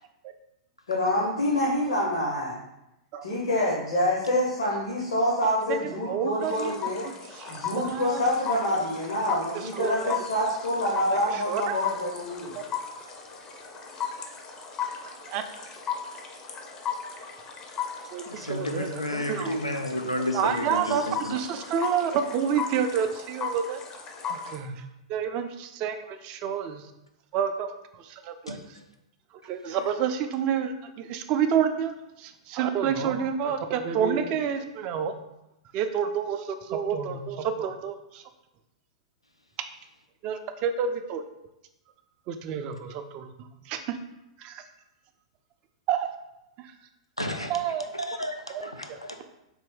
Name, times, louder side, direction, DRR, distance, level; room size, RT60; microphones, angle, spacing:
voice 1, 0.9-2.5 3.2-7.1 7.5-12.6, left 1 dB, 70° left, -6 dB, 0.8 m, -26 dB
voice 2, 5.7-6.8 7.3-8.2 8.8-8.9 9.7-10.2 11.1-11.2 11.5-11.7 15.3-15.4 18.1-19.6 20.3-23.8 24.3-24.8 25.1-26.8 27.3-28.6 29.4-35.1 35.7-38.2 40.2-41.2 42.3-43.3 43.7-44.0 44.4-44.6 45.9-46.1 47.5-49.0, right 7 dB, 35° right, 8 dB, 0.3 m, -29 dB
sound 1, 6.4-24.6, left 7 dB, 25° left, 0.5 m, -37 dB
voice 3, 18.3-21.4 28.5-28.6 29.7-29.8 47.2-47.5 48.1-49.2, left 1 dB, 90° left, 4 dB, 0.4 m, -31 dB
3.4 x 2.6 x 3.5 m, 0.90 s
figure-of-eight pair, 100°, 3 cm